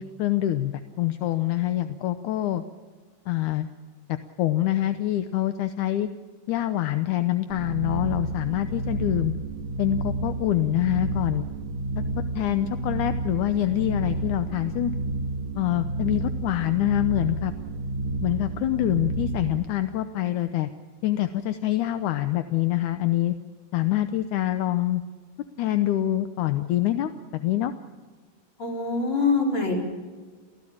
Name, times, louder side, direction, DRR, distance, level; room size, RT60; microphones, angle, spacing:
voice 1, 0.0-2.6 3.3-3.7 4.4-6.1 6.5-9.3 9.8-11.5 12.2-14.9 15.6-17.5 18.2-20.7 21.0-23.4 23.7-25.0 25.6-27.7, left 13 dB, 70° left, 10 dB, 2.0 m, -25 dB
sound 1, 7.5-19.6, right 2 dB, 40° right, 2.5 m, -30 dB
voice 2, 28.6-29.7, left 4 dB, 35° left, 0 dB, 5.2 m, -24 dB
29.0 x 16.0 x 8.7 m, 1.5 s
omnidirectional pair, 4.1 m